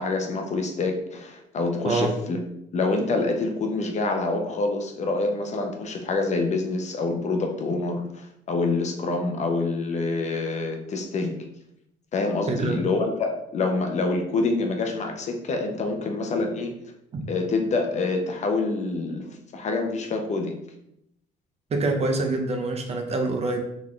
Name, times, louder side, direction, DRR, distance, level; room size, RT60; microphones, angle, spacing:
voice 1, 0.0-2.4 2.7-11.4 12.1-16.7 17.3-20.6, left 3 dB, 45° left, 4 dB, 0.7 m, -26 dB
voice 2, 12.5-12.8 17.1-17.3 21.7-23.6, right 3 dB, 40° right, 4 dB, 0.7 m, -25 dB
4.0 x 3.6 x 3.2 m, 0.79 s
cardioid pair, 110°, 17 cm